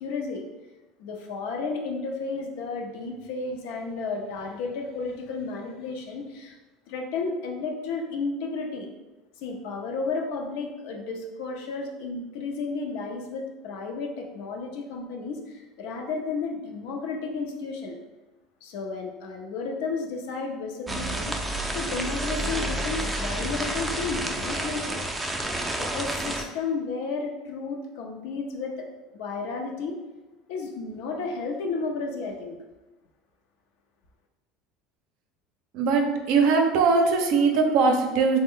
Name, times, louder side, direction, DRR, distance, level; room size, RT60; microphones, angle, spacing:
voice 1, 0.0-0.4 1.0-6.6 6.9-8.9 9.4-18.0 18.6-21.3 21.7-25.0 25.7-28.9 29.1-30.0 30.5-32.6, left 4 dB, 70° left, 2 dB, 0.5 m, -32 dB
sound 1, 20.9-26.4, right 1 dB, 10° right, 0.4 m, -30 dB
voice 2, 35.7-38.4, right 4 dB, 70° right, 3 dB, 0.5 m, -21 dB
3.2 x 2.1 x 3.6 m, 1.1 s
hypercardioid pair, 90°, 0 cm